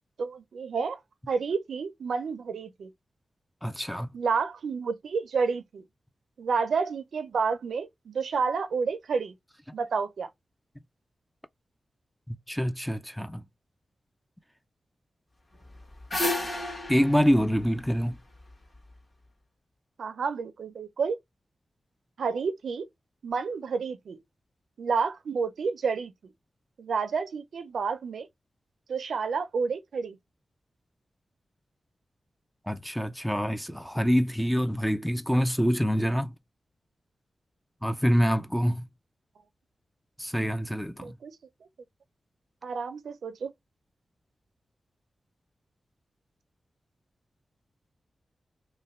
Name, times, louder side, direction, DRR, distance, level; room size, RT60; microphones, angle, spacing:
voice 1, 0.2-1.0 1.3-2.9 4.1-5.8 6.4-9.3 9.7-10.3 20.0-21.2 22.2-22.9 23.2-24.2 24.8-26.3 26.8-28.3 28.9-30.2 41.0-41.4 42.6-43.5, right 5 dB, 90° right, 0.5 m, -30 dB
voice 2, 3.6-4.1 12.3-13.4 16.9-18.2 32.7-36.3 37.8-38.9 40.2-41.2, equal, 5° left, 0.4 m, -26 dB
sound 1, 15.6-18.8, left 1 dB, 35° left, 1.6 m, -32 dB
3.2 x 2.2 x 4.1 m
wide cardioid pair, 100°, 0 cm